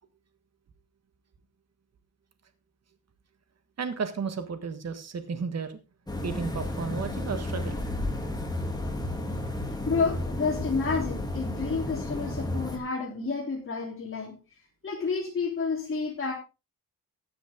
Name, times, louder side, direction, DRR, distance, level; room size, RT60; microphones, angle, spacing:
voice 1, 3.8-5.8 6.2-7.8, right 5 dB, 45° right, 9 dB, 1.5 m, -33 dB
sound 1, 6.1-12.8, left 1 dB, 10° left, 2.4 m, -32 dB
voice 2, 9.8-14.4 14.8-16.3, left 4 dB, 35° left, -4 dB, 3.4 m, -30 dB
14.0 x 9.6 x 3.7 m, 0.30 s
wide cardioid pair, 130°, 36 cm